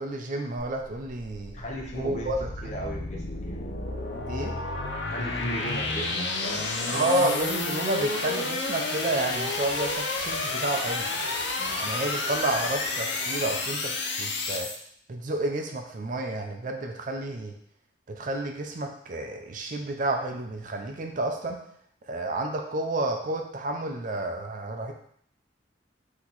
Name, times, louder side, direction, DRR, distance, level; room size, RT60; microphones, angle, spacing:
voice 1, 0.0-1.5 2.0-2.5 4.3-4.5 6.9-11.1 11.8-13.9 14.2-14.7 15.1-17.5 18.1-21.6 22.1-24.9, right 2 dB, 45° right, 3 dB, 0.5 m, -30 dB
sound 1, 0.6-14.8, left 3 dB, 70° left, 0.6 m, -31 dB
voice 2, 1.5-2.3 2.6-3.6 5.0-7.0 11.6-11.8, equal, 40° left, -1 dB, 0.9 m, -37 dB
4.3 x 2.9 x 3.9 m, 0.66 s
head